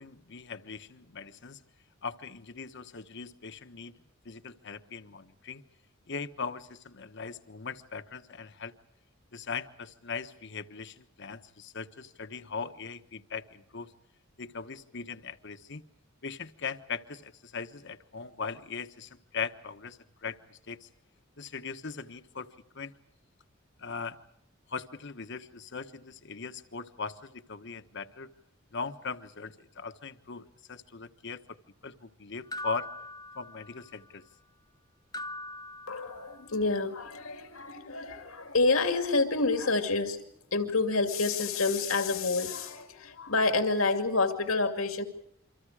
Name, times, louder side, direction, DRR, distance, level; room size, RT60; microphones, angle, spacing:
voice 1, 0.0-1.6 2.0-3.9 4.2-5.6 6.1-8.7 9.3-13.9 14.4-15.8 16.2-20.9 21.4-22.5 22.7-22.9 23.8-24.2 24.7-28.3 28.7-31.6 31.8-32.9 33.3-34.2, left 5 dB, 60° left, 10 dB, 1.3 m, -39 dB
sound 1, 32.5-34.0 35.1-36.6, left 2 dB, 20° left, 0.9 m, -42 dB
voice 2, 35.9-40.2 40.5-45.0, left 3 dB, 85° left, 6 dB, 2.5 m, -28 dB
28.5 x 25.5 x 5.0 m, 0.72 s
head